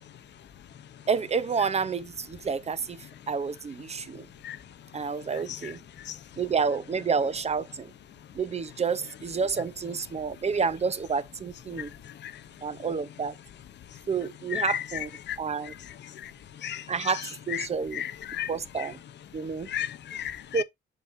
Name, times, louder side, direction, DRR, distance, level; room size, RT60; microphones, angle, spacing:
voice 1, 1.1-4.3 4.9-5.8 6.4-7.9 8.3-11.9 12.6-13.4 14.1-15.1 15.4-15.7 16.9-18.0 18.5-19.0 19.3-19.7 20.5-20.6, right 5 dB, 35° right, 0.7 m, -29 dB
voice 2, 17.9-18.5 19.7-20.6, left 11 dB, 65° left, 0.7 m, -32 dB
7.2 x 6.7 x 2.6 m
cardioid pair, 105°, 19 cm